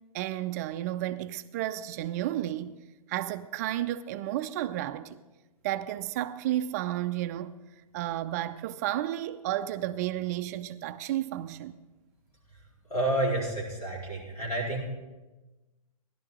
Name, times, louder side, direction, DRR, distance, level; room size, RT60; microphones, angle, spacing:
voice 1, 0.1-2.8 3.1-5.2 5.6-7.6 7.9-11.8, right 13 dB, 25° right, 0.3 m, -32 dB
voice 2, 12.9-14.8, right 1 dB, 90° left, 4.1 m, -29 dB
15.0 x 11.5 x 3.7 m
figure-of-eight pair, 115°, 19 cm